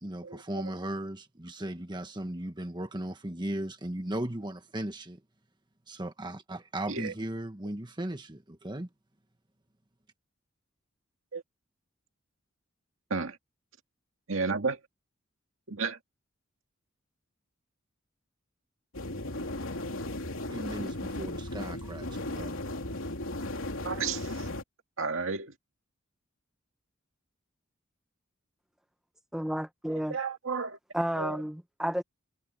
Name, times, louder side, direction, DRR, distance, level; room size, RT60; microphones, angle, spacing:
voice 1, 0.0-5.2 5.9-8.9 20.5-22.6, right 1 dB, 20° right, 1.4 m, -37 dB
voice 2, 14.3-14.8 15.7-16.0 23.8-24.5 25.0-25.5 30.1-30.8 31.2-31.4, right 4 dB, 75° right, 2.1 m, -32 dB
sound 1, 18.9-24.6, left 1 dB, 85° left, 3.0 m, -36 dB
voice 3, 29.3-30.2 30.9-32.0, equal, 5° right, 0.7 m, -31 dB
head